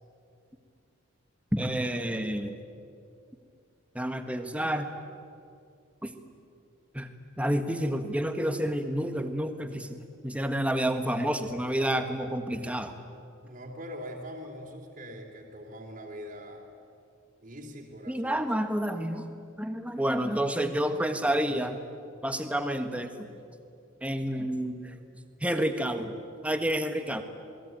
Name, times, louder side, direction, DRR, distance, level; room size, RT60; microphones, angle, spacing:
voice 1, 1.5-2.6 3.9-4.9 6.0-6.2 6.9-7.1 7.4-12.9 18.1-19.3 19.6-21.8 22.2-23.3 24.0-24.9 25.4-26.1 26.4-27.2, right 1 dB, 5° right, 7 dB, 1.5 m, -29 dB
voice 2, 13.4-16.6 17.4-18.4 23.9-24.0, equal, 40° right, 0 dB, 3.1 m, -42 dB
27.5 x 21.0 x 9.1 m, 2.4 s
head